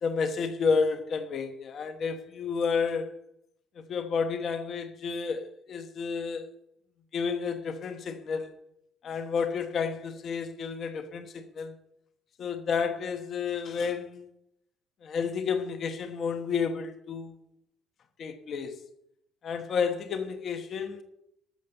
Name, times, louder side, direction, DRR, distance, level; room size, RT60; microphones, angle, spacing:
voice 1, 0.0-3.2 3.9-6.5 7.1-8.6 9.0-11.7 12.4-14.3 15.0-17.3 18.2-18.8 19.4-21.0, left 5 dB, 40° left, 1.1 m, -31 dB
12.5 x 6.6 x 7.0 m
cardioid pair, 175°, 0 cm